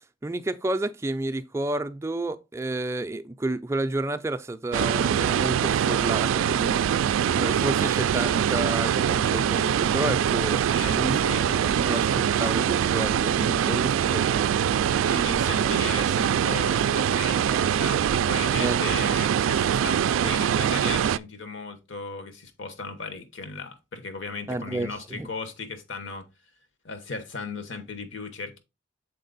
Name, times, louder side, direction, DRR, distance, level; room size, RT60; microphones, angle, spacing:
voice 1, 0.2-6.8 7.3-10.6 10.9-11.2 11.5-14.6 18.6-18.9 24.5-25.3, right 2 dB, 15° right, 0.4 m, -30 dB
sound 1, 4.7-21.2, right 9 dB, 90° right, 0.3 m, -23 dB
voice 2, 10.7-11.5 11.9-12.3 15.1-26.2 26.8-28.6, left 4 dB, 70° left, 1.1 m, -36 dB
6.6 x 4.3 x 4.0 m
head